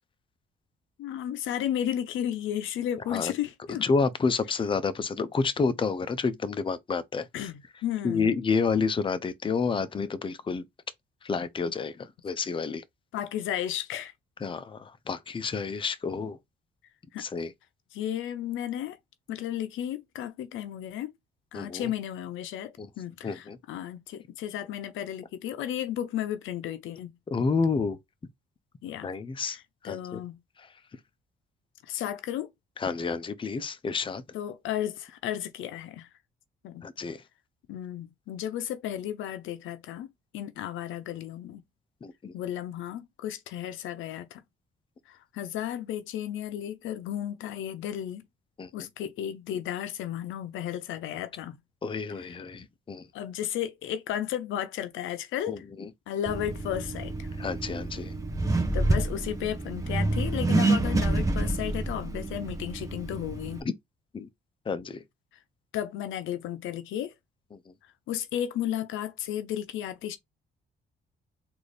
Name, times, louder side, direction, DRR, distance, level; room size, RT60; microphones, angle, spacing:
voice 1, 1.0-3.8 7.3-8.3 13.1-14.1 15.8-15.9 17.1-17.3 17.9-19.0 19.3-21.1 21.5-27.2 28.8-29.1 29.4-30.4 31.8-32.5 34.3-36.1 36.6-36.9 37.7-40.1 40.3-41.6 42.3-44.4 45.1-48.2 48.7-51.6 52.2-52.4 53.1-55.6 56.1-57.3 58.7-63.7 65.7-67.1 68.1-70.2, left 11 dB, 85° left, 0.6 m, -33 dB
voice 2, 3.8-7.3 8.0-10.6 11.2-12.8 14.4-16.4 17.2-17.5 21.5-21.9 22.8-22.9 23.2-23.6 27.3-28.0 29.0-29.6 29.8-30.2 30.6-30.7 32.8-34.2 36.8-37.2 42.0-42.3 48.6-48.7 51.8-53.1 55.5-55.9 57.4-58.1 63.6-63.7 64.1-64.3 64.7-65.0, left 4 dB, 25° left, 0.5 m, -29 dB
Accelerating revving vroom, 56.3-63.6, right 2 dB, 15° right, 1.1 m, -28 dB
3.9 x 2.6 x 3.3 m
cardioid pair, 90°, 20 cm